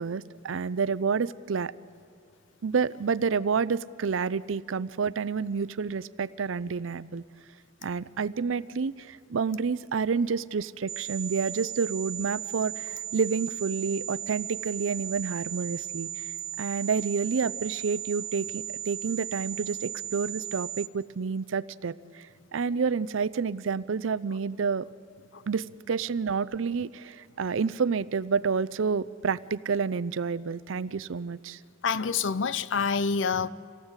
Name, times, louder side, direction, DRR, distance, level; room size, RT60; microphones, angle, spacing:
voice 1, 0.0-1.7 2.6-7.2 7.8-16.3 16.6-24.9 25.5-31.6, right 5 dB, 80° right, 0.5 m, -29 dB
sound 1, 10.9-20.9, right 10 dB, 15° right, 0.6 m, -36 dB
voice 2, 31.8-33.5, left 5 dB, 65° left, 0.6 m, -27 dB
26.5 x 17.5 x 8.1 m
head